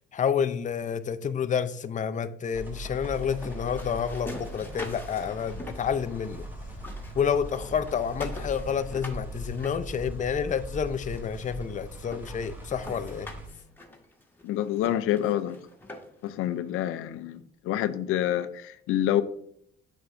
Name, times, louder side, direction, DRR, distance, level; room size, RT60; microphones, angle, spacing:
voice 1, 0.1-6.4 7.2-13.3, left 7 dB, 35° left, 11 dB, 0.5 m, -29 dB
sound 1, 2.5-13.5, right 1 dB, 10° right, 3.0 m, -40 dB
sound 2, 2.8-6.5 6.7-10.5 11.2-11.3 11.7-11.8 12.1-16.3, left 1 dB, 10° left, 1.6 m, -45 dB
voice 2, 14.4-15.6 16.2-17.4 17.6-19.2, left 12 dB, 80° left, 12 dB, 0.5 m, -27 dB
7.9 x 5.9 x 2.6 m, 0.69 s
cardioid pair, 75°, 21 cm